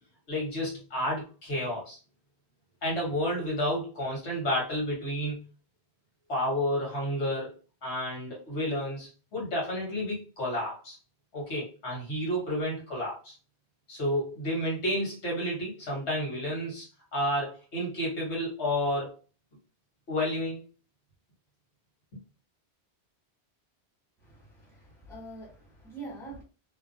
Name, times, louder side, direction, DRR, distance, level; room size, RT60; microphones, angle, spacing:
voice 1, 0.3-2.0 2.8-5.4 6.3-7.5 7.8-10.9 11.3-13.3 13.9-16.8 17.1-19.1 20.1-20.6, equal, 85° left, 1.6 m, -31 dB
voice 2, 24.2-26.4, right 2 dB, 5° left, 1.1 m, -45 dB
2.8 x 2.2 x 2.5 m
omnidirectional pair, 1.1 m